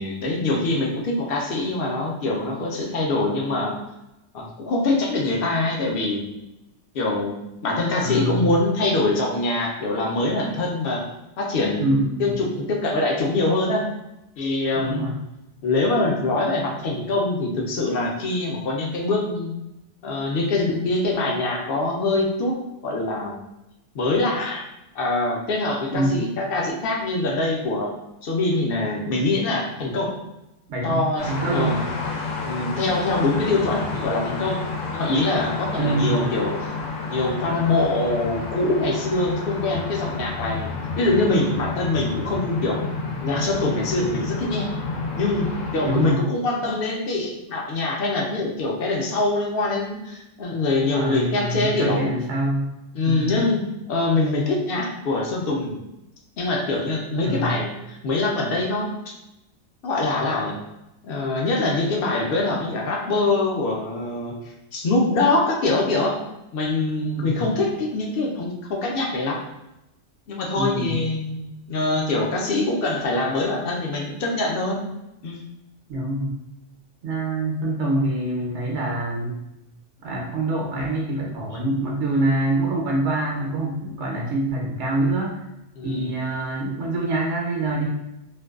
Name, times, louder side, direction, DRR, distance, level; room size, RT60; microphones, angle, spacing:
voice 1, 0.0-3.8 4.3-6.4 6.9-11.0 11.4-13.9 14.4-15.0 15.6-19.5 20.0-22.6 22.8-23.4 23.9-24.6 24.9-27.9 28.2-30.2 30.8-31.8 32.4-34.6 34.9-36.5 37.1-42.8 43.2-44.7 45.2-52.0 52.9-55.8 56.4-58.9 59.8-60.6 61.0-64.4 64.7-66.2 66.5-69.4 70.3-71.4 71.7-74.8 75.2-75.4 85.7-86.1, left 2 dB, 60° left, -1 dB, 0.6 m, -24 dB
voice 2, 8.0-8.5 11.8-12.4 14.7-15.2 25.9-26.2 30.7-31.9 35.8-36.3 45.8-46.3 50.9-52.7 53.0-53.4 57.2-57.5 67.2-67.5 70.5-71.0 75.9-76.3 77.0-79.4 80.0-85.4 85.8-87.9, right 1 dB, 75° right, -2 dB, 0.8 m, -25 dB
sound 1, 31.2-46.1, left 4 dB, 85° left, 0.9 m, -30 dB
2.5 x 2.2 x 2.3 m, 0.91 s
omnidirectional pair, 1.3 m